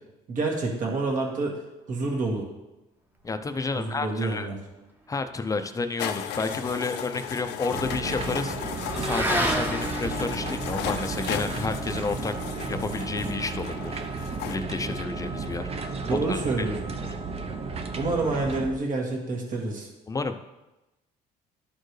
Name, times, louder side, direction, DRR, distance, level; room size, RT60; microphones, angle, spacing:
voice 1, 0.3-1.6 1.9-2.5 3.7-4.6 16.0-16.8 18.0-19.9, right 3 dB, 50° right, 0 dB, 1.7 m, -28 dB
voice 2, 3.2-4.5 5.1-8.5 9.0-12.3 12.7-13.9 14.2-16.4 20.1-20.3, left 3 dB, 20° left, 8 dB, 0.5 m, -31 dB
sound 1, 6.0-14.6, left 10 dB, 80° left, 0.5 m, -36 dB
Motorcycle / Accelerating revving vroom, 6.3-15.1, right 1 dB, 10° right, 0.9 m, -34 dB
sound 2, 7.7-18.7, right 4 dB, 35° right, 0.7 m, -34 dB
12.0 x 4.4 x 3.2 m, 1.0 s
cardioid pair, 110°, 17 cm